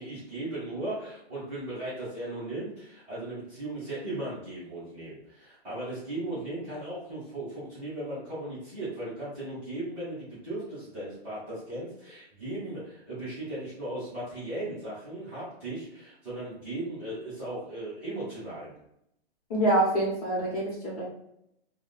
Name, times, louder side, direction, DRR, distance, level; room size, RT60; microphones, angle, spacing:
voice 1, 0.0-18.7, right 1 dB, 5° right, -14 dB, 0.9 m, -37 dB
voice 2, 19.5-21.0, right 1 dB, 35° left, -5 dB, 1.0 m, -26 dB
3.6 x 2.3 x 2.3 m, 0.77 s
hypercardioid pair, 175°, 31 cm